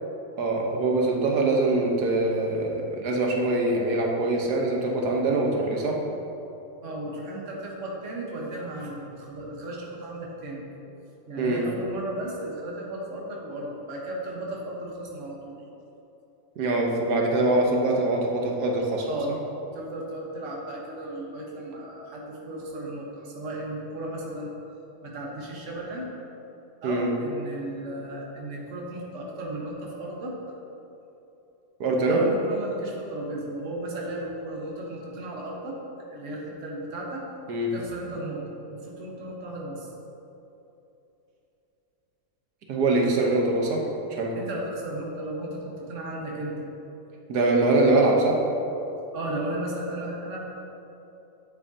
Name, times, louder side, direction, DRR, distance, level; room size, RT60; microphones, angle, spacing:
voice 1, 0.4-6.0 11.4-11.6 16.6-19.1 26.8-27.1 31.8-32.2 37.5-37.7 42.7-44.3 47.3-48.4, right 2 dB, 85° right, 0 dB, 1.6 m, -23 dB
voice 2, 6.8-10.7 11.3-15.6 19.1-19.3 19.7-24.5 25.0-26.1 26.8-30.3 32.1-35.8 36.1-37.3 37.7-39.9 44.3-46.7 49.1-50.4, right 1 dB, 50° right, -2 dB, 1.5 m, -35 dB
9.8 x 8.6 x 2.8 m, 2.9 s
omnidirectional pair, 1.7 m